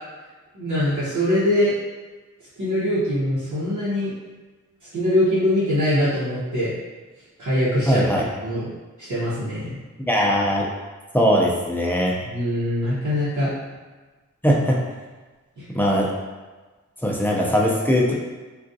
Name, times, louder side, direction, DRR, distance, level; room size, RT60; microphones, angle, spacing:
voice 1, 0.5-1.7 2.6-4.1 4.9-6.7 7.4-8.7 9.1-9.8 12.2-13.5 15.6-15.7, left 1 dB, 70° right, -11 dB, 0.9 m, -22 dB
voice 2, 7.9-8.3 10.1-10.6 11.1-12.1 14.4-14.8 15.7-16.1 17.0-18.2, equal, 5° left, -3 dB, 0.5 m, -20 dB
3.5 x 2.4 x 2.6 m, 1.3 s
wide cardioid pair, 95°, 30 cm